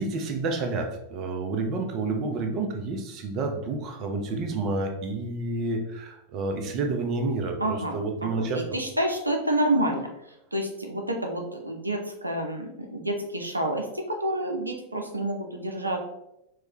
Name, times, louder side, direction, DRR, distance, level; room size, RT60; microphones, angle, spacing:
voice 1, 0.0-8.6, right 3 dB, 35° right, 4 dB, 0.6 m, -29 dB
voice 2, 7.6-10.1 10.5-16.0, right 1 dB, 85° right, 3 dB, 0.5 m, -29 dB
4.7 x 2.2 x 2.9 m, 0.84 s
figure-of-eight pair, 90°, 0 cm